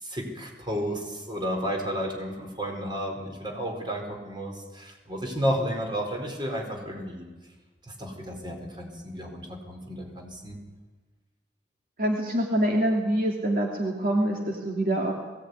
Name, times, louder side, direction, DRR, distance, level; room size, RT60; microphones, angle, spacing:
voice 1, 0.0-7.3 7.8-10.6, equal, 25° right, 2 dB, 4.5 m, -32 dB
voice 2, 12.0-15.1, right 1 dB, 50° right, 0 dB, 2.7 m, -25 dB
20.5 x 17.5 x 9.7 m, 1.3 s
head